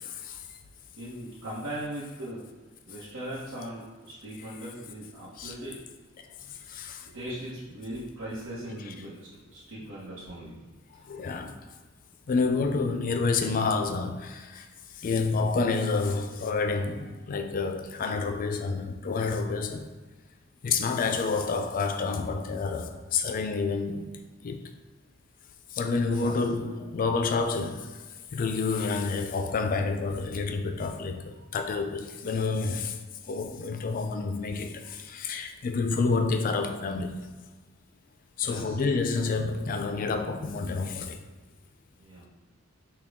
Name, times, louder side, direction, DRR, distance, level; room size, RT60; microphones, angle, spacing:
voice 1, 1.0-2.4 2.9-5.8 7.1-10.5 26.1-26.4 38.4-38.8 42.0-42.3, right 1 dB, 85° right, 1.0 m, -39 dB
voice 2, 6.7-7.1 8.9-9.0 11.1-11.5 12.3-14.7 15.0-19.9 20.6-24.1 24.4-24.7 25.7-27.9 28.3-33.0 33.3-37.2 38.4-41.2, left 4 dB, 40° left, 0.4 m, -29 dB
5.8 x 2.3 x 3.5 m
head